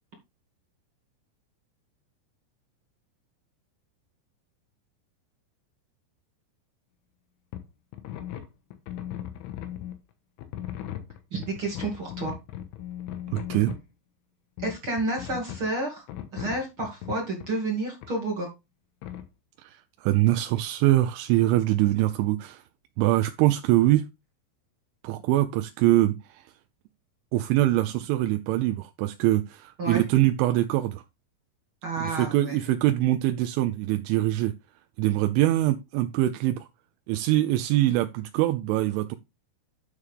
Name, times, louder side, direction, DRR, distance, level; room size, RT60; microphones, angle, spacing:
sound 1, 7.5-7.7 7.9-10.0 10.4-13.9 14.6-15.7 16.1-17.5 18.0-18.1 19.0-19.3, left 11 dB, 75° left, 3.5 m, -37 dB
voice 1, 11.3-12.3 14.6-16.0 16.3-18.5 29.8-30.0 31.8-32.6, right 2 dB, 50° right, 1.6 m, -30 dB
voice 2, 13.3-13.7 19.6-22.6 23.0-24.0 25.0-26.5 27.3-31.0 32.0-34.5 35.0-36.7 37.1-39.2, right 15 dB, 80° right, 2.8 m, -23 dB
11.0 x 6.5 x 3.5 m
omnidirectional pair, 5.8 m